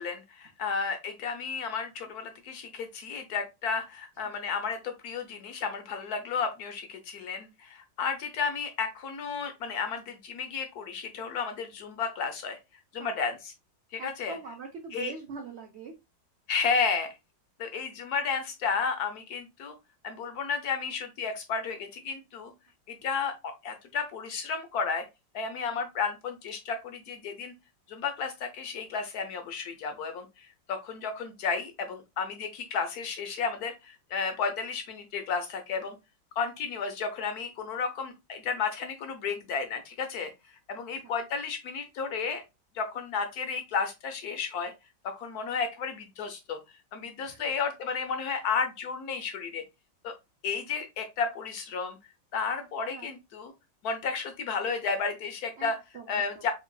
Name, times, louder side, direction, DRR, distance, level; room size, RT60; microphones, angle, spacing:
voice 1, 0.0-12.6 12.9-13.4 13.9-14.4 14.9-15.1 16.5-17.1 17.6-19.7 20.0-22.5 22.9-25.0 25.3-27.5 27.9-36.0 36.4-40.3 40.7-42.4 42.7-44.7 45.2-46.6 46.9-49.6 50.0-50.1 50.4-52.0 52.3-53.5 53.8-55.7 56.1-56.5, left 5 dB, 70° left, 7 dB, 1.0 m, -32 dB
voice 2, 14.0-15.9 16.7-16.8 41.0-41.1 47.2-47.4 48.2-48.4 52.9-53.1 55.6-56.4, right 5 dB, 70° right, 3 dB, 0.6 m, -43 dB
4.6 x 3.1 x 2.2 m, 0.23 s
omnidirectional pair, 2.0 m